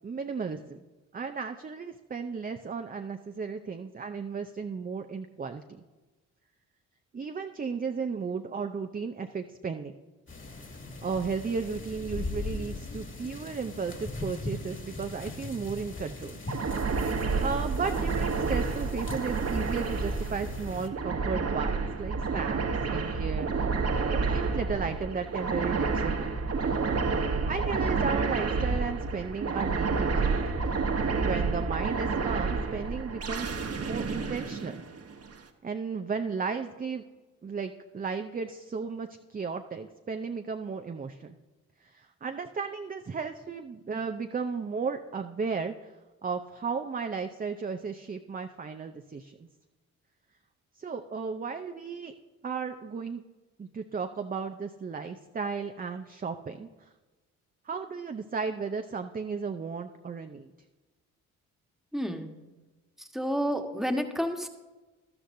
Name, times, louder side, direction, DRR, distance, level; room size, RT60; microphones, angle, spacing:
voice 1, 0.0-0.8 1.1-5.8 7.1-9.9 11.0-16.4 17.0-23.5 24.1-26.3 27.4-30.5 31.2-33.5 33.8-34.7 35.6-37.0 37.4-41.4 41.8-45.9 46.2-49.5 50.8-52.1 52.4-53.2 53.6-56.7 57.6-60.5, right 5 dB, 20° right, 6 dB, 0.6 m, -34 dB
sound 1, 10.3-20.9, left 2 dB, 30° left, 2.2 m, -40 dB
sound 2, 16.5-35.3, right 4 dB, 40° right, 1.3 m, -29 dB
voice 2, 61.9-62.3 63.1-64.5, equal, ahead, 4 dB, 1.5 m, -30 dB
13.0 x 12.5 x 2.7 m, 1.2 s
hypercardioid pair, 50°, 39 cm